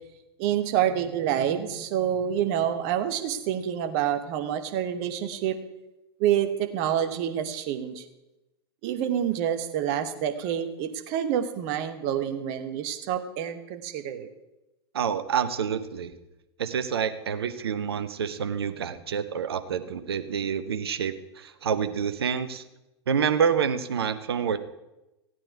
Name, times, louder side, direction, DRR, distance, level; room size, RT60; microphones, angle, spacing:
voice 1, 0.4-5.6 6.2-8.0 8.8-14.3, right 10 dB, 40° right, 8 dB, 1.1 m, -27 dB
voice 2, 14.9-16.1 16.6-22.6 23.1-24.6, right 7 dB, 60° right, 10 dB, 0.9 m, -27 dB
15.5 x 9.0 x 4.7 m, 0.96 s
figure-of-eight pair, 100°, 14 cm